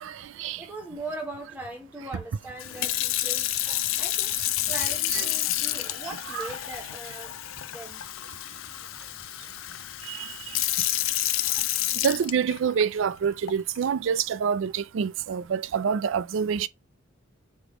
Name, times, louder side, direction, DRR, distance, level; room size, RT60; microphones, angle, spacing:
voice 1, 0.0-0.6 4.7-4.8 5.1-5.3 6.3-6.5 10.1-10.3 12.0-16.7, right 7 dB, 75° right, 0.3 m, -27 dB
voice 2, 0.6-3.5 4.0-4.4 4.7-7.4 7.6-8.0, right 2 dB, 10° right, 0.8 m, -39 dB
Sink (filling or washing) / Fill (with liquid), 2.6-12.8 13.5-13.8, left 14 dB, 85° left, 0.4 m, -29 dB
3.5 x 3.0 x 4.7 m
head